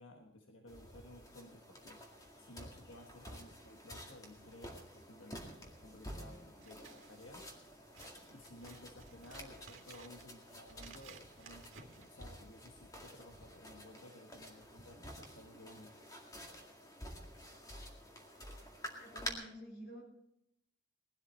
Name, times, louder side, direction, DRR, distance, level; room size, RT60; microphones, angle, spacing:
voice 1, 0.0-2.0 2.4-7.5 8.3-16.0, left 1 dB, 85° left, 2 dB, 1.5 m, -56 dB
sound 1, 0.7-19.3, equal, 20° left, 2.0 m, -51 dB
Scissors, 6.5-12.8, right 5 dB, 85° right, 2.0 m, -58 dB
voice 2, 19.0-20.0, equal, 55° left, 1 dB, 5.9 m, -50 dB
20.0 x 12.0 x 4.3 m, 0.77 s
head